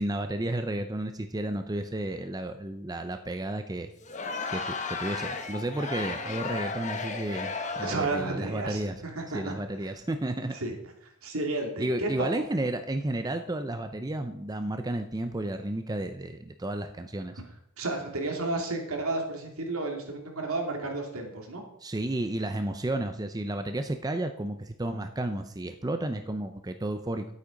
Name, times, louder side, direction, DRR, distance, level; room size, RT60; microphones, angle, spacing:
voice 1, 0.0-3.9 4.5-4.7 5.0-9.0 9.3-10.5 11.8-17.3 21.8-27.3, right 1 dB, 15° right, 8 dB, 0.6 m, -32 dB
Crowd, 4.0-8.2, left 4 dB, 35° left, 1.1 m, -34 dB
voice 2, 7.8-9.5 10.5-10.7 11.2-12.4 17.8-21.6, right 2 dB, 75° right, 2 dB, 2.7 m, -32 dB
11.5 x 8.5 x 5.2 m, 0.76 s
head